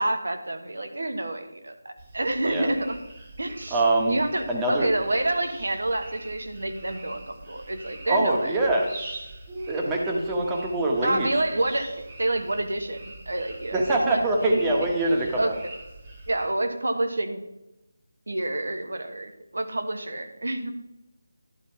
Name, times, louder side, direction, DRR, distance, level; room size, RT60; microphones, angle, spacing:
voice 1, 0.0-3.0 3.4-8.6 11.0-14.6 15.1-15.6 16.3-17.4 18.3-20.7, right 1 dB, 70° right, 6 dB, 1.2 m, -28 dB
sound 1, 2.0-16.5, right 1 dB, 30° right, 1.6 m, -42 dB
voice 2, 3.7-4.2 4.5-4.9 8.1-8.9 9.7-11.3 13.7-15.6, right 2 dB, 15° right, 0 dB, 1.2 m, -24 dB
11.0 x 4.1 x 5.8 m, 0.93 s
figure-of-eight pair, 160°, 0 cm